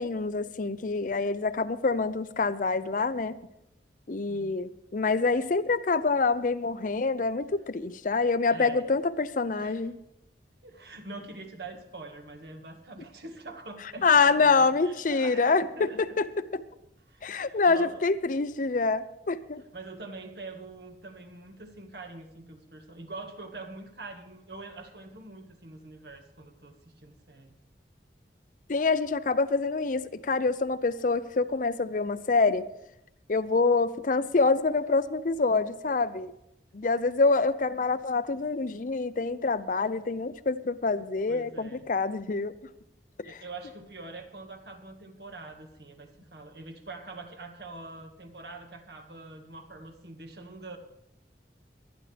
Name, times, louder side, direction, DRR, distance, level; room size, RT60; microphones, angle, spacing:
voice 1, 0.0-3.4 4.1-10.0 14.0-15.9 16.2-16.3 17.2-19.6 28.7-32.6 33.3-36.3 36.7-42.5 43.3-43.4, left 4 dB, 45° left, 13 dB, 0.5 m, -26 dB
voice 2, 4.3-4.6 8.5-8.9 9.5-9.9 10.6-16.2 17.1-18.0 19.7-27.5 41.3-41.9 43.2-50.8, right 3 dB, 65° right, 5 dB, 1.7 m, -44 dB
23.5 x 9.8 x 3.4 m, 0.81 s
head